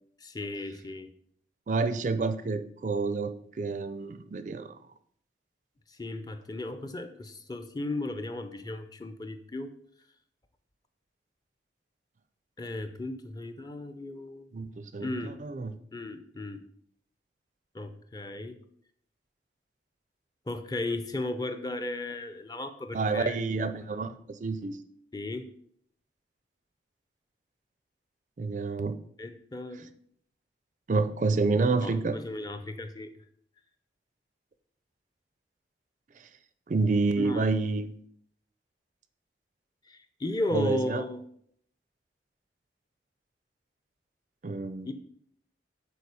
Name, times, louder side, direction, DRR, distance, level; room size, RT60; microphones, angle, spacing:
voice 1, 0.2-1.1 5.9-9.7 12.6-14.5 15.0-15.4 15.9-16.6 17.7-18.6 20.5-23.4 23.8-23.9 25.1-25.5 29.2-29.9 31.8-33.1 37.2-37.5 39.9-41.2 44.8-44.9, left 2 dB, 20° left, 9 dB, 0.5 m, -35 dB
voice 2, 1.7-4.7 14.5-15.7 22.9-24.1 24.4-24.8 28.4-29.0 30.9-32.2 36.7-37.9 40.5-41.0 44.4-44.9, right 3 dB, 45° right, 11 dB, 0.4 m, -28 dB
6.9 x 4.4 x 4.8 m, 0.65 s
head